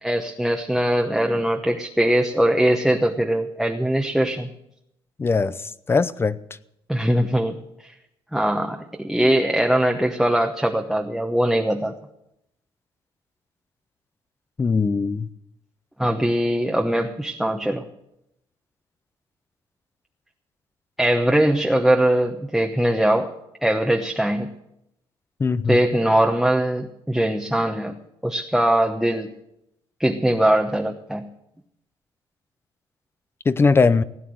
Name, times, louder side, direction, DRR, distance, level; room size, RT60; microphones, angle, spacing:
voice 1, 0.0-4.5 6.9-7.6 8.3-11.9 16.0-17.8 21.0-23.3 23.6-24.5 25.7-28.0 28.2-29.3 30.0-31.3, right 1 dB, ahead, 1.0 m, -21 dB
voice 2, 5.2-5.6 5.9-6.4 14.6-15.3 25.4-25.8 33.5-34.0, left 4 dB, 25° left, 0.6 m, -20 dB
17.0 x 9.2 x 7.7 m
cardioid pair, 105°, 10 cm